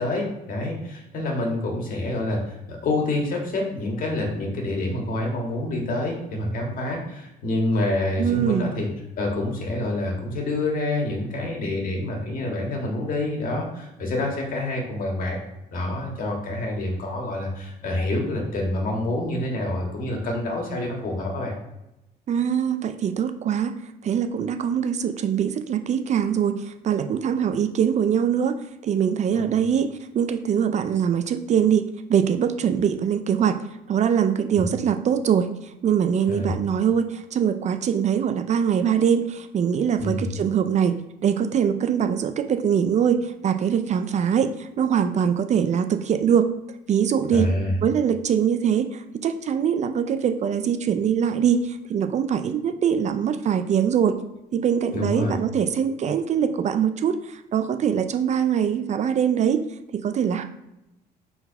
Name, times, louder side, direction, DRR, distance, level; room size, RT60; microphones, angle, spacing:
voice 1, 0.0-8.9 9.2-15.4 15.7-21.6 29.3-29.7 36.3-36.5 40.0-40.3 47.3-47.7 54.9-55.4, left 1 dB, 55° left, 0 dB, 1.9 m, -27 dB
voice 2, 8.2-8.7 22.3-23.7 24.0-28.6 28.8-31.8 32.1-33.6 33.9-35.5 35.8-46.5 46.9-47.5 47.8-54.2 54.5-59.6 59.9-60.4, right 8 dB, 45° right, 9 dB, 0.5 m, -23 dB
4.6 x 4.1 x 5.3 m, 0.92 s
cardioid pair, 110°, 17 cm